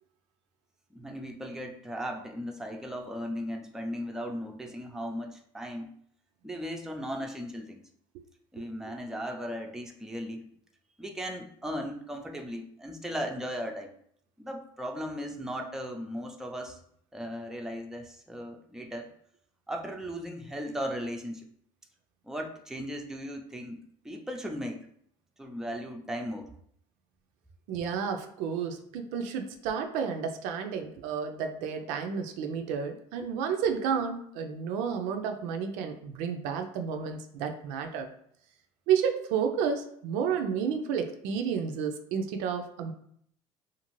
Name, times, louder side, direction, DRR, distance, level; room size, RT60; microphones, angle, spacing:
voice 1, 0.9-5.9 6.4-7.8 8.5-10.4 11.0-13.9 14.4-16.8 17.1-19.1 19.7-21.5 22.2-23.8 24.0-24.9 25.4-26.5, equal, 5° right, 2 dB, 0.5 m, -37 dB
voice 2, 27.7-38.1 38.9-42.9, right 7 dB, 75° right, 5 dB, 0.4 m, -31 dB
2.5 x 2.5 x 3.0 m, 0.66 s
supercardioid pair, 80°, 13 cm